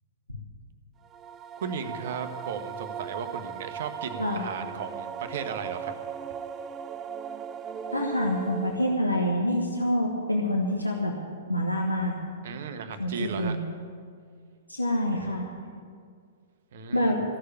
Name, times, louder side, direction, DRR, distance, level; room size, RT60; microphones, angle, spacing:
sound 1, 1.0-9.2, right 8 dB, 20° right, 0.4 m, -38 dB
voice 1, 1.6-5.9 12.4-13.6 16.7-17.2, right 6 dB, 50° right, 8 dB, 1.1 m, -36 dB
voice 2, 4.2-4.5 7.9-11.1 11.5-12.1 13.0-13.6 14.7-15.5 16.9-17.2, left 1 dB, 85° left, 0 dB, 1.2 m, -26 dB
14.5 x 6.6 x 9.6 m, 2.1 s
figure-of-eight pair, 110°, 0 cm